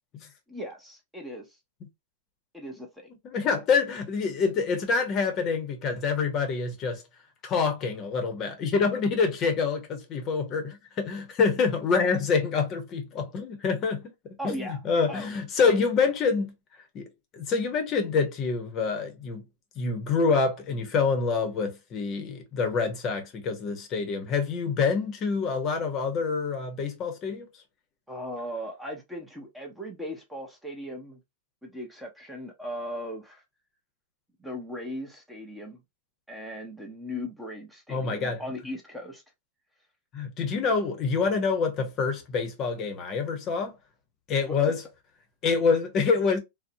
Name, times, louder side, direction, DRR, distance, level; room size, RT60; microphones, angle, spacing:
voice 1, 0.5-1.6 2.5-3.1 14.4-14.8 15.1-15.3 28.1-31.2 31.6-33.4 34.4-35.8 36.3-39.2 44.5-44.7, equal, 5° right, 0.6 m, -38 dB
voice 2, 3.3-7.0 7.4-16.5 16.9-17.1 17.3-19.4 19.8-27.5 37.9-38.4 40.1-43.7 44.3-44.8 45.4-46.4, left 5 dB, 35° left, 0.7 m, -26 dB
2.6 x 2.0 x 2.6 m
hypercardioid pair, 130°, 0 cm